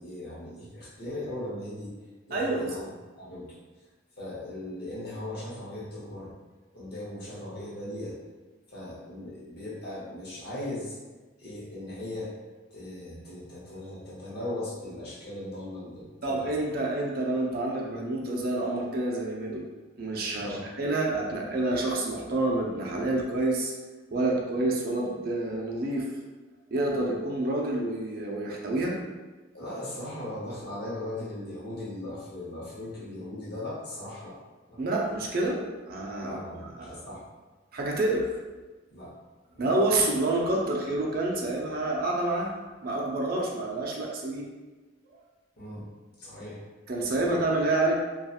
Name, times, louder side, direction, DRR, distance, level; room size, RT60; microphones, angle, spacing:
voice 1, 0.0-1.9 2.3-2.9 3.2-3.6 4.2-6.3 6.7-8.2 8.7-11.0 11.4-12.3 12.7-16.5 20.4-20.7 29.5-34.4 34.7-34.8 36.2-37.2 38.9-39.1 39.5-39.7 45.6-45.8 46.2-46.6 47.1-47.4, left 1 dB, 55° left, -7 dB, 0.9 m, -38 dB
voice 2, 2.3-2.8 16.2-19.6 20.0-23.7 24.1-26.1 26.7-28.9 34.8-35.6 35.9-36.4 36.8-36.9 37.7-38.3 39.6-42.5 42.8-44.5 46.9-47.9, right 2 dB, 50° right, -2 dB, 0.4 m, -28 dB
2.7 x 2.3 x 2.4 m, 1.2 s
head